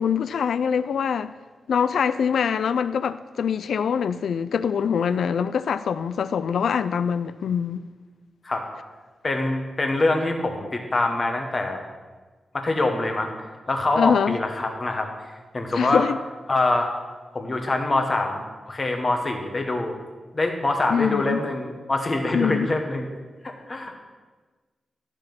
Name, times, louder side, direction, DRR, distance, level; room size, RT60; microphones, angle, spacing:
voice 1, 0.0-1.3 1.7-7.9 14.0-14.4 15.7-16.2 20.9-21.4 22.3-22.7, left 7 dB, 80° left, 0.3 m, -24 dB
voice 2, 9.2-11.9 12.5-13.3 13.7-16.0 16.5-16.9 17.3-19.9 20.3-23.1 23.4-24.0, left 2 dB, 25° left, 1.1 m, -25 dB
13.0 x 5.3 x 6.0 m
wide cardioid pair, 175°, 0 cm